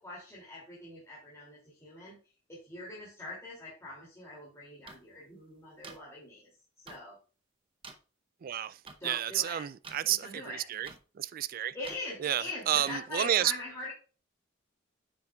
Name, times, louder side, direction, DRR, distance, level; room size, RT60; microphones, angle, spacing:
voice 1, 0.0-2.2 2.5-6.5 6.8-7.2 9.0-9.7 10.1-10.6 11.7-13.9, left 2 dB, 15° left, 2.6 m, -43 dB
sound 1, 4.9-5.0 5.8-6.0 6.9-7.0 7.8-7.9 8.9-9.0 9.8-10.0 10.8-11.0 11.8-12.0 12.8-13.0, right 4 dB, 30° right, 0.7 m, -47 dB
voice 2, 8.4-8.8 9.0-10.9 11.2-11.7 12.2-13.5, right 11 dB, 50° right, 0.3 m, -30 dB
9.3 x 6.6 x 2.3 m
head